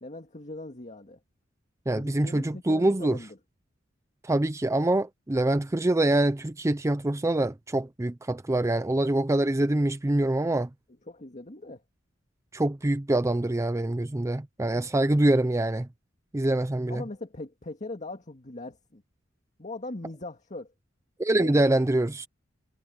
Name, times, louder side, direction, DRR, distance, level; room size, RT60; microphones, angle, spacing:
voice 1, 0.0-1.2 2.0-3.4 11.1-11.8 16.9-19.0 19.6-20.7 21.3-21.8, left 2 dB, 40° left, 1.9 m, -40 dB
voice 2, 1.9-3.2 4.2-10.7 12.5-15.9 16.3-17.0 21.2-22.3, right 1 dB, 15° right, 0.5 m, -25 dB
head